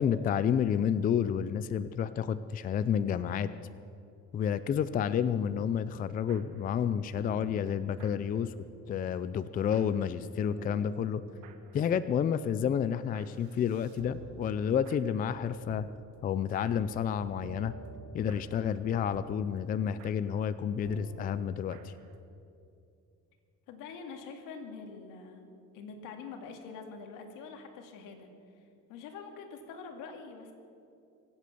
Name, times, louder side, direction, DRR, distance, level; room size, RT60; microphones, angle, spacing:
voice 1, 0.0-3.5 4.3-8.5 8.9-11.2 11.7-15.9 16.2-17.7 18.1-21.9, left 8 dB, 30° left, 14 dB, 0.4 m, -30 dB
sound 1, 5.8-10.2 10.6-22.2, right 4 dB, 65° right, 1.5 m, -51 dB
voice 2, 23.7-25.5 25.7-28.3 28.6-30.5, left 5 dB, 85° left, 4 dB, 2.3 m, -45 dB
24.5 x 8.3 x 7.0 m, 2.6 s
cardioid pair, 140°, 31 cm